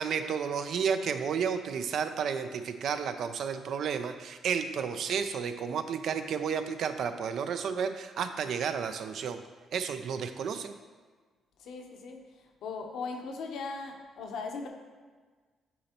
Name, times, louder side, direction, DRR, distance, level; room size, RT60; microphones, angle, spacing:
voice 1, 0.0-9.4 9.7-10.7, right 6 dB, 70° right, 9 dB, 0.4 m, -32 dB
voice 2, 11.6-14.7, left 4 dB, 80° left, 3 dB, 0.8 m, -39 dB
8.3 x 4.1 x 2.9 m, 1.4 s
cardioid pair, 90°, 0 cm